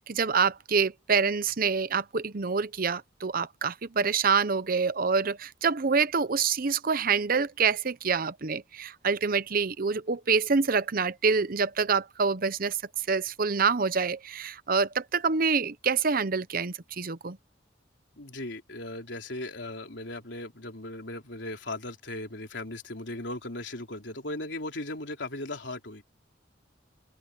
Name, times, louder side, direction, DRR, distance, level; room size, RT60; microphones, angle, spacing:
voice 1, 0.0-12.8 13.1-17.4, right 5 dB, 50° right, 0.8 m, -26 dB
voice 2, 18.2-26.0, left 2 dB, 70° left, 3.9 m, -37 dB
open air
head